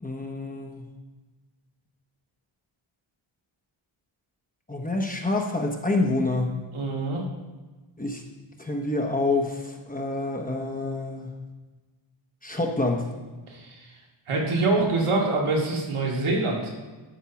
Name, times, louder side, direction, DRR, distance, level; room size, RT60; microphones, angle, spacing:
voice 1, 0.0-0.8 4.7-6.5 8.0-8.2 8.6-11.3 12.4-13.0, left 2 dB, 15° left, 2 dB, 0.9 m, -27 dB
voice 2, 6.7-7.2 13.5-13.9 14.3-16.7, right 2 dB, 90° right, -2 dB, 2.3 m, -25 dB
12.5 x 4.5 x 5.9 m, 1.3 s
wide cardioid pair, 140°, 49 cm